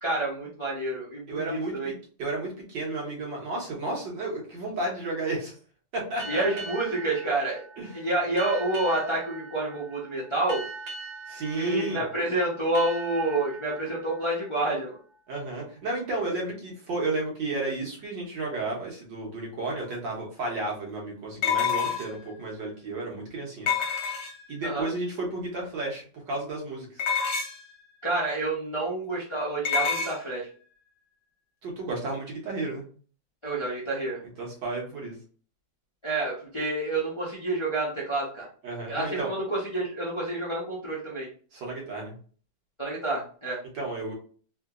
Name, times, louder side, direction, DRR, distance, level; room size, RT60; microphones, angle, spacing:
voice 1, 0.0-1.9 6.3-7.6 7.9-10.6 11.5-15.0 24.6-24.9 28.0-30.5 33.4-34.2 36.0-38.5 38.9-41.3 42.8-43.6, right 2 dB, 30° left, -6 dB, 0.5 m, -28 dB
voice 2, 1.3-1.9 2.2-5.6 5.9-6.4 7.8-8.0 11.3-12.0 15.3-23.7 24.5-27.0 31.6-32.8 34.4-35.2 38.6-39.3 41.5-42.1 43.7-44.1, right 2 dB, 75° right, -2 dB, 1.9 m, -32 dB
sound 1, 6.2-15.5, right 3 dB, 55° right, 1.3 m, -42 dB
sound 2, 19.9-20.0 21.4-22.3 23.7-24.6 27.0-27.7 29.7-30.2, left 7 dB, 60° left, 1.3 m, -27 dB
3.8 x 2.8 x 2.4 m, 0.43 s
omnidirectional pair, 2.0 m